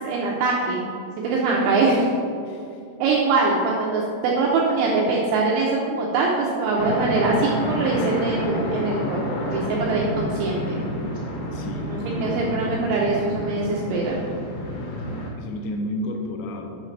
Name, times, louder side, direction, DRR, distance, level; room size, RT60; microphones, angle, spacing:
voice 1, 0.0-0.9 1.2-2.0 3.0-9.2 9.5-10.8 11.9-14.2, right 3 dB, 85° right, -3 dB, 2.6 m, -23 dB
voice 2, 2.5-2.8 11.5-12.9 15.4-16.8, left 1 dB, 85° left, 2 dB, 3.0 m, -32 dB
sound 1, 6.8-15.3, equal, 70° left, 2.5 m, -29 dB
7.8 x 5.6 x 3.2 m, 2.6 s
omnidirectional pair, 5.9 m